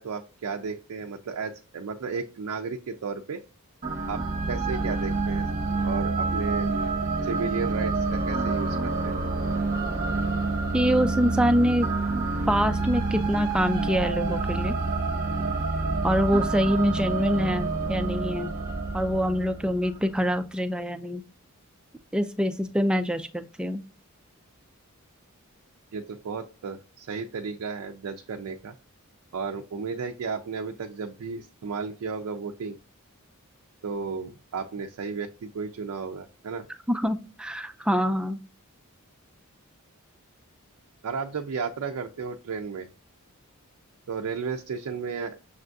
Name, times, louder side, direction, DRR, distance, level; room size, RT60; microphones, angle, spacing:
voice 1, 0.0-3.4 4.1-4.2 4.5-5.5 5.8-6.7 7.2-9.1 25.9-28.7 29.3-32.8 33.8-36.7 41.0-42.9 44.1-45.4, right 5 dB, 75° right, 3 dB, 0.4 m, -33 dB
sound 1, 3.8-20.0, right 3 dB, 40° right, 0.8 m, -28 dB
voice 2, 10.7-11.9 12.5-14.7 16.0-18.5 18.9-21.2 22.1-23.8 36.9-38.4, equal, 5° right, 8 dB, 0.3 m, -25 dB
6.4 x 2.5 x 2.3 m, 0.34 s
head